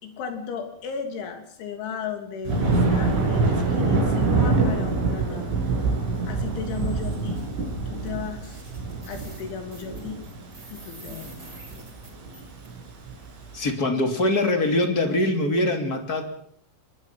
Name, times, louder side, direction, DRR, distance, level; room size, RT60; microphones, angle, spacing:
voice 1, 0.0-5.6 6.3-7.5 7.9-8.6 9.1-10.3 10.7-11.3, left 6 dB, 65° left, 5 dB, 5.3 m, -35 dB
Thunder, 2.5-13.6, right 3 dB, 65° right, 8.0 m, -25 dB
sound 1, 6.7-7.5 8.1-8.2 8.4-12.7, right 2 dB, 20° right, 5.6 m, -48 dB
voice 2, 13.5-16.2, left 1 dB, 30° left, 5 dB, 2.0 m, -23 dB
24.5 x 21.0 x 5.9 m, 0.63 s
omnidirectional pair, 6.0 m